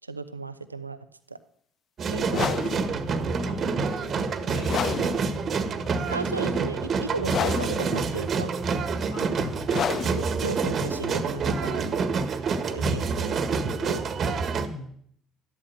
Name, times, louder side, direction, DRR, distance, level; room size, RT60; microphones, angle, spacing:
voice 1, 0.0-1.0 1.3-1.4 2.1-2.9 6.1-8.5 10.1-12.0 12.7-14.0, right 3 dB, 85° right, 12 dB, 0.7 m, -36 dB
sound 1, 2.0-14.7, right 4 dB, 40° right, 1.6 m, -27 dB
voice 2, 2.1-3.6 4.0-5.5 9.1-9.9 12.8-13.2 14.6-14.9, left 1 dB, 80° left, -2 dB, 7.0 m, -40 dB
sound 2, 2.3-12.1, left 7 dB, 45° left, 1.1 m, -33 dB
13.5 x 12.0 x 6.5 m, 0.65 s
figure-of-eight pair, 55°, 0 cm